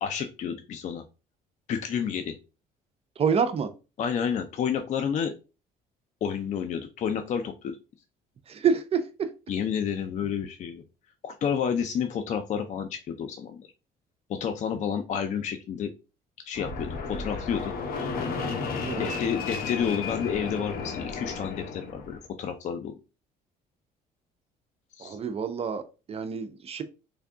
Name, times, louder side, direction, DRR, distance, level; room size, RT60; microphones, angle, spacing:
voice 1, 0.0-1.0 1.7-2.3 4.0-5.3 6.2-7.8 9.5-10.8 11.2-13.7 14.3-15.9 16.5-17.7 19.0-22.9 25.0-25.2, left 7 dB, 45° left, 7 dB, 0.4 m, -30 dB
voice 2, 3.2-3.7 8.5-9.3 18.8-19.1 25.0-26.8, right 6 dB, 35° right, 9 dB, 0.5 m, -27 dB
Fixed-wing aircraft airplane, 16.5-22.2, left 4 dB, 60° left, 0.8 m, -33 dB
3.4 x 2.3 x 3.6 m, 0.31 s
cardioid pair, 110°, 17 cm